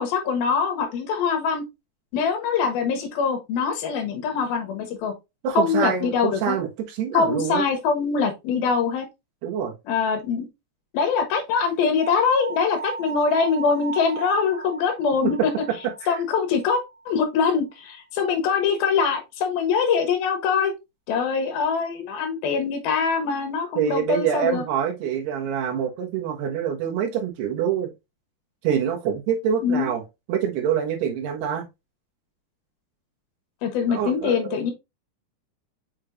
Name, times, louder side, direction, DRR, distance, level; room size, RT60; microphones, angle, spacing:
voice 1, 0.0-1.7 2.1-5.1 5.6-6.6 7.1-9.1 9.9-10.5 10.9-15.5 16.1-20.7 21.1-24.6 29.6-29.9 33.6-34.7, left 5 dB, 70° left, 3.0 m, -23 dB
voice 2, 5.4-7.7 9.4-9.7 15.2-15.3 23.8-27.9 28.6-30.0 30.3-31.6 33.9-34.7, right 8 dB, 80° right, 3.4 m, -25 dB
sound 1, 12.0-17.1, right 5 dB, 60° right, 3.3 m, -36 dB
6.3 x 6.2 x 2.5 m
omnidirectional pair, 4.7 m